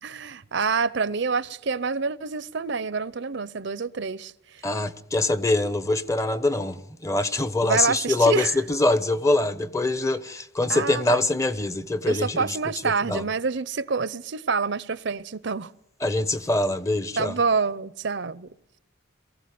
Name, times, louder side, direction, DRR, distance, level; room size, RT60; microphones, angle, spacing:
voice 1, 0.0-4.6 7.6-8.6 10.7-11.2 12.1-15.7 17.2-18.5, right 4 dB, 65° right, 0.8 m, -27 dB
voice 2, 4.6-12.6 13.1-13.2 16.0-17.4, left 2 dB, 15° left, 0.9 m, -24 dB
23.0 x 15.5 x 9.4 m
head